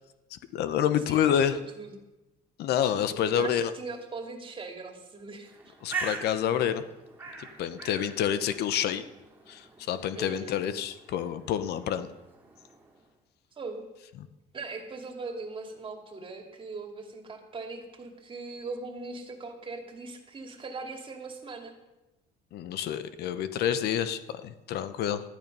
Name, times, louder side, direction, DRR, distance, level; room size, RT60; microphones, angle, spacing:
voice 1, 0.3-1.6 2.6-3.7 5.8-6.8 7.6-9.0 9.5-12.1 22.5-25.2, left 9 dB, 75° left, 12 dB, 0.9 m, -28 dB
voice 2, 1.1-1.9 3.3-5.7 10.1-10.6 13.5-13.9 14.5-21.7, right 3 dB, 30° right, 3 dB, 2.4 m, -40 dB
Bird, 5.4-13.0, right 4 dB, 10° right, 2.9 m, -42 dB
13.5 x 10.5 x 5.4 m, 1.0 s
cardioid pair, 110°, 17 cm